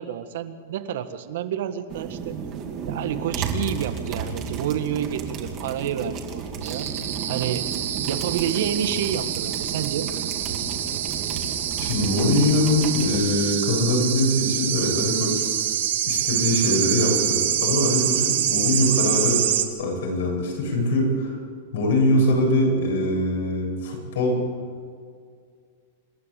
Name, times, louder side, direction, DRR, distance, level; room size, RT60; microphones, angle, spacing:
voice 1, 0.0-2.4 2.9-7.6 8.0-10.1, right 9 dB, 60° right, 10 dB, 1.6 m, -29 dB
sound 1, 1.9-13.2, right 5 dB, 30° right, 2.7 m, -33 dB
sound 2, 6.6-19.6, right 11 dB, 80° right, 2.5 m, -26 dB
voice 2, 11.9-15.5 16.1-19.4 19.8-21.4 21.7-24.4, left 1 dB, 70° left, 0 dB, 8.0 m, -22 dB
27.5 x 12.5 x 8.4 m, 2.1 s
supercardioid pair, 160°, 0 cm